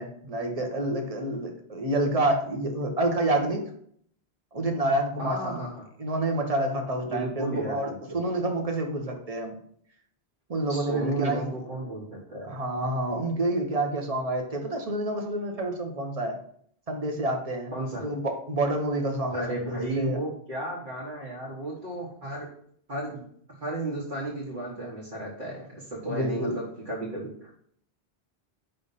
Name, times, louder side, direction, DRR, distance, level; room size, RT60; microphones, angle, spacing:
voice 1, 0.0-3.6 4.5-5.7 6.0-9.6 10.5-11.5 12.4-16.4 16.9-20.2 26.0-26.5, right 1 dB, 35° right, 3 dB, 1.0 m, -28 dB
voice 2, 5.2-5.8 7.0-8.2 10.7-12.6 17.7-18.0 19.3-22.5 22.9-23.2 23.6-27.5, right 2 dB, 55° right, -6 dB, 1.5 m, -33 dB
5.3 x 3.4 x 5.5 m, 0.64 s
omnidirectional pair, 1.1 m